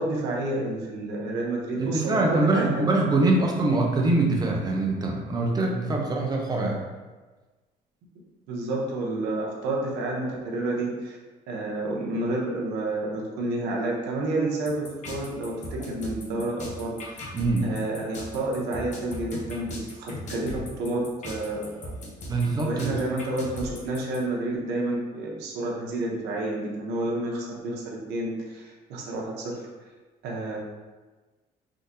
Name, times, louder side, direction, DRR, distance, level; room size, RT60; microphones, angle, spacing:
voice 1, 0.0-2.8 8.5-11.2 11.5-17.4 17.6-19.7 20.0-21.9 22.6-29.7 30.2-30.6, right 2 dB, 90° right, -3 dB, 0.7 m, -30 dB
voice 2, 1.8-6.8 17.3-17.7 22.3-22.9, right 2 dB, 25° right, 0 dB, 0.6 m, -24 dB
sound 1, 14.7-24.2, left 1 dB, 45° left, 0.8 m, -38 dB
3.7 x 2.6 x 2.6 m, 1.3 s
cardioid pair, 110°, 17 cm